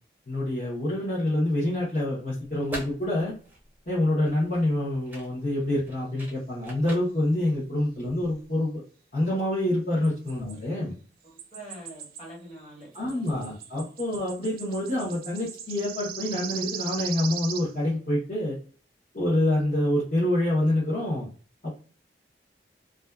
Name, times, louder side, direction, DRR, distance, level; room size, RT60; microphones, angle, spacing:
voice 1, 0.3-3.3 3.9-8.8 9.1-10.9 12.9-18.5 19.1-21.3 21.6-21.7, left 1 dB, 45° left, -8 dB, 0.8 m, -26 dB
sound 1, 2.4-8.5, right 1 dB, 10° right, 0.5 m, -45 dB
sound 2, 10.0-10.6 11.4-12.3 12.6-17.7, right 8 dB, 55° right, 0.3 m, -38 dB
voice 2, 11.2-13.4 13.7-13.8, right 1 dB, 30° left, -6 dB, 1.4 m, -46 dB
2.5 x 2.2 x 2.2 m, 0.39 s
head